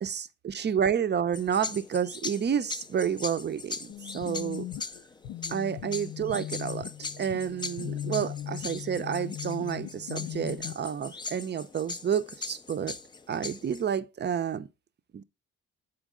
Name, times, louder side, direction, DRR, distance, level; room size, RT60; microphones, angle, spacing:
voice 1, 0.0-4.7 5.5-6.9 7.2-13.0 13.3-14.7 15.1-15.2, right 8 dB, 35° right, 0.5 m, -30 dB
sound 1, 1.3-13.9, left 4 dB, 15° left, 0.4 m, -40 dB
sound 2, 3.9-10.7, left 12 dB, 90° left, 0.6 m, -38 dB
7.2 x 4.6 x 3.6 m
cardioid pair, 90°, 30 cm